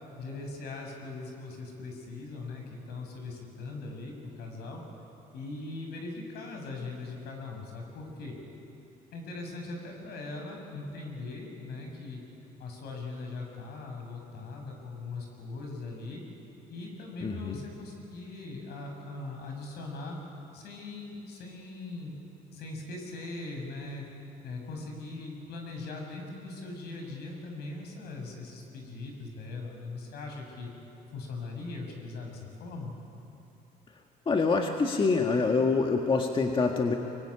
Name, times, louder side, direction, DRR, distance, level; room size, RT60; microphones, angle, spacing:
voice 1, 0.2-4.8 5.3-8.4 9.1-12.2 12.6-16.2 16.7-20.2 20.5-22.2 22.5-24.1 24.4-30.7 31.1-32.9, left 3 dB, 75° left, 2 dB, 7.1 m, -40 dB
voice 2, 17.2-17.6 34.3-36.9, left 4 dB, 30° left, 2 dB, 1.9 m, -26 dB
25.0 x 23.0 x 10.0 m, 2.8 s
cardioid pair, 110°, 17 cm